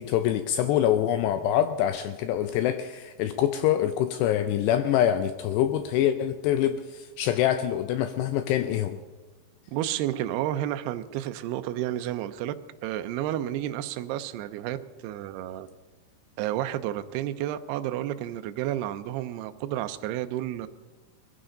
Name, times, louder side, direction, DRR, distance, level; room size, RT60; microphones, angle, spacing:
voice 1, 0.0-9.0, left 11 dB, 85° left, 9 dB, 2.5 m, -25 dB
voice 2, 9.7-12.5 12.8-14.8 15.0-15.7 16.4-20.7, right 13 dB, 80° right, 9 dB, 2.3 m, -31 dB
21.5 x 15.5 x 3.9 m, 1.3 s
omnidirectional pair, 5.4 m